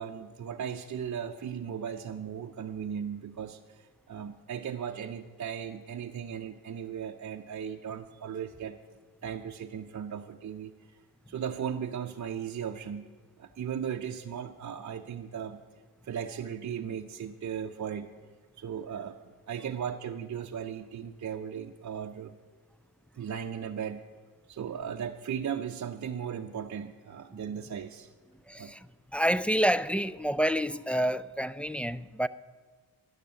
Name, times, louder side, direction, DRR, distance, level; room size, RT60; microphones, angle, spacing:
voice 1, 0.0-8.8 9.2-10.7 11.3-13.1 13.4-15.6 16.0-18.1 18.6-19.2 19.5-22.4 23.2-24.0 24.5-28.1 28.6-28.7, right 8 dB, 45° right, 0.7 m, -37 dB
voice 2, 28.5-32.3, equal, 5° left, 0.3 m, -28 dB
12.0 x 10.5 x 7.6 m
cardioid pair, 75°, 40 cm